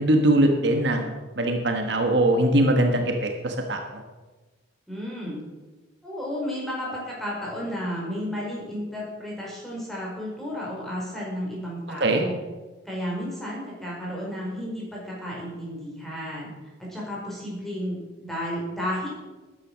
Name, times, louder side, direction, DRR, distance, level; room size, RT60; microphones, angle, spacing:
voice 1, 0.0-4.0 12.0-12.2, right 1 dB, 60° right, 3 dB, 1.4 m, -22 dB
voice 2, 4.9-5.4 6.0-12.4 12.8-16.5 16.8-19.1, equal, ahead, -5 dB, 4.9 m, -32 dB
13.5 x 10.0 x 6.2 m, 1.2 s
head